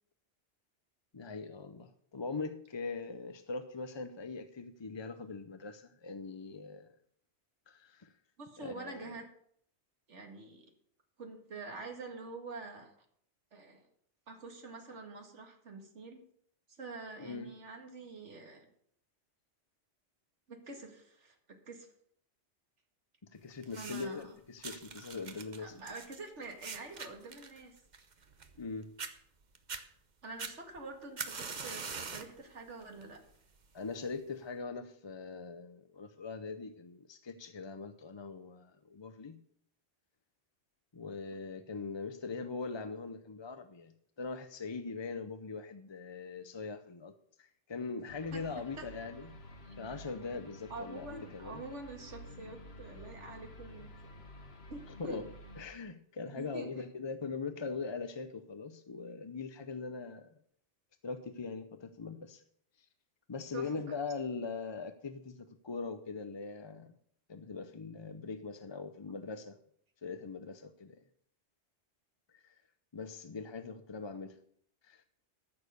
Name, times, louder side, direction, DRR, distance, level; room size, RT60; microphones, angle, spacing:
voice 1, 1.1-6.9 7.7-8.1 8.6-9.1 17.2-17.5 23.3-25.7 28.6-28.9 33.7-39.4 40.9-49.3 49.8-51.6 55.0-55.3 55.6-60.3 61.0-62.4 62.8-62.9 63.3-66.9 67.3-69.6 70.0-71.0 72.3-72.6 72.9-74.4 74.8-75.0, left 4 dB, 30° left, 9 dB, 0.5 m, -41 dB
voice 2, 8.4-9.2 10.1-10.7 11.2-12.9 13.5-13.9 14.3-16.2 16.7-18.7 20.5-21.9 23.8-24.3 25.6-27.8 30.2-33.2 48.3-48.9 49.6-49.7 50.7-54.2 54.7-55.2 56.4-56.8 63.5-64.0, right 3 dB, 80° right, 3 dB, 2.2 m, -46 dB
sound 1, 23.6-24.2 24.6-28.7 29.0-29.1 29.6-29.8 30.4-32.4 32.8-33.2 34.0-34.1, right 5 dB, 40° right, 1.0 m, -43 dB
sound 2, 48.1-55.6, left 1 dB, 60° left, 1.7 m, -51 dB
14.0 x 6.5 x 6.7 m, 0.65 s
omnidirectional pair, 1.2 m